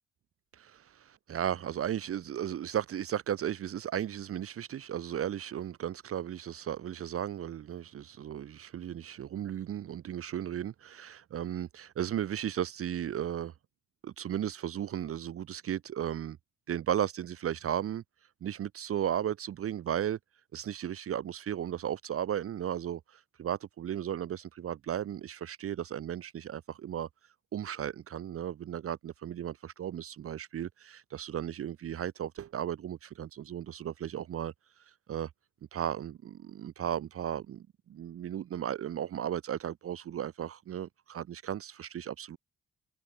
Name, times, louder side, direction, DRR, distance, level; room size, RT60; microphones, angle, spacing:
voice 1, 0.5-13.5 14.0-16.4 16.7-18.0 18.4-20.2 20.5-27.1 27.5-34.5 35.1-35.3 35.7-42.4, right 10 dB, 50° right, 0.7 m, -35 dB
cardioid pair, 90°, 30 cm